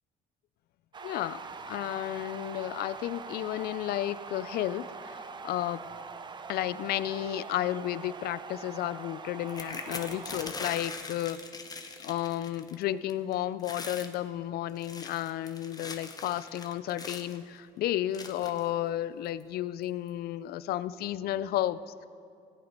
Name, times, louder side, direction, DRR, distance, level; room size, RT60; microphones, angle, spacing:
sound 1, 0.9-10.5, right 5 dB, 25° right, 0.6 m, -43 dB
voice 1, 1.0-6.0 6.5-11.5 12.0-22.1, left 13 dB, 65° left, 17 dB, 0.4 m, -33 dB
sound 2, 9.5-12.8 13.1-13.3 13.6-14.1 14.7-17.4 18.1-18.7 19.4-19.5 19.8-20.1, left 4 dB, 20° left, 0.9 m, -41 dB
16.5 x 8.1 x 5.3 m, 2.4 s
cardioid pair, 110°, 17 cm